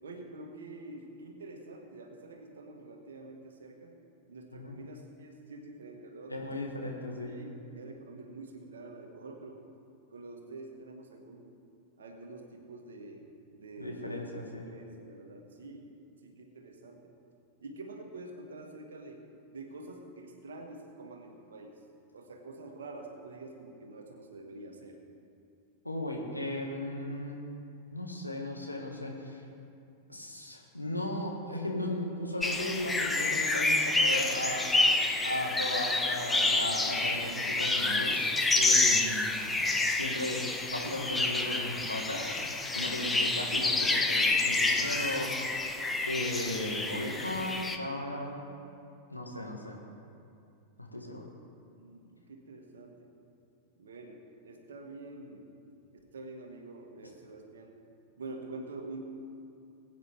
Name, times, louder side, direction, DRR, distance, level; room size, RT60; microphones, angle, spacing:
voice 1, 0.0-3.9 4.3-6.8 7.3-9.6 10.1-11.6 12.0-13.3 13.5-14.3 14.7-15.9 16.2-17.1 17.6-19.2 19.5-21.8 22.1-25.0 43.7-44.4 51.8-53.1 53.8-55.5 56.1-57.7 58.2-59.1, right 2 dB, 65° right, 3 dB, 1.7 m, -46 dB
voice 2, 6.3-7.3 13.8-14.7 25.8-27.4 27.9-29.4 30.1-34.7 35.2-40.4 40.7-42.5 42.7-45.8 46.1-48.4 49.1-49.8 50.8-51.3, left 1 dB, 85° left, -1 dB, 1.8 m, -36 dB
sound 1, 32.4-47.8, left 2 dB, 10° left, 0.9 m, -28 dB
21.0 x 9.2 x 3.5 m, 2.5 s
figure-of-eight pair, 90°, 0 cm